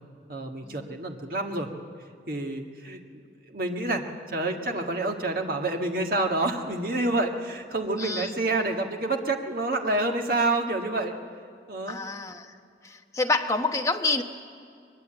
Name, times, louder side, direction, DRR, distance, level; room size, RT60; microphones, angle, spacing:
voice 1, 0.3-1.7 2.3-3.0 3.5-11.1 11.7-12.0, right 2 dB, 55° right, 3 dB, 1.7 m, -28 dB
voice 2, 8.0-8.3 11.9-12.5 12.8-14.2, left 3 dB, 20° left, 4 dB, 1.1 m, -28 dB
22.0 x 21.0 x 8.8 m, 2.3 s
head